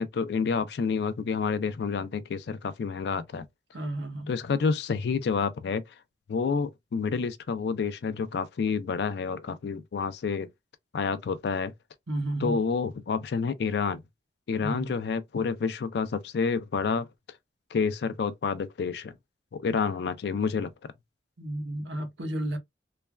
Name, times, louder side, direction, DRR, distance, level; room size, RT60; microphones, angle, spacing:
voice 1, 0.0-3.4 4.3-5.8 6.3-10.5 10.9-11.7 12.4-14.0 14.5-17.1 17.7-19.2 19.5-20.9, left 5 dB, 60° left, 0.4 m, -29 dB
voice 2, 3.7-4.3 12.1-12.6 14.6-14.9 21.4-22.6, right 1 dB, 75° right, 0.8 m, -32 dB
3.2 x 2.2 x 2.2 m
head